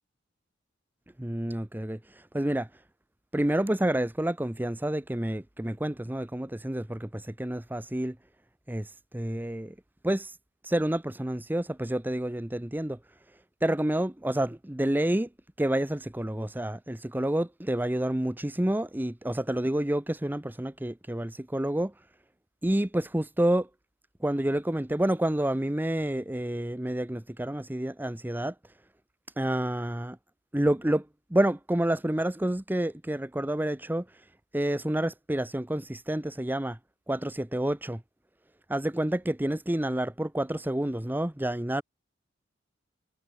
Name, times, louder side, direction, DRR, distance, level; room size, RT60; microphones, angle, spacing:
voice 1, 1.2-2.7 3.3-8.2 8.7-9.7 10.0-10.3 10.6-13.0 13.6-15.3 15.6-21.9 22.6-23.7 24.2-28.5 29.4-30.2 30.5-34.1 34.5-36.8 37.1-38.0 38.7-41.8, right 1 dB, 10° right, 0.8 m, -29 dB
head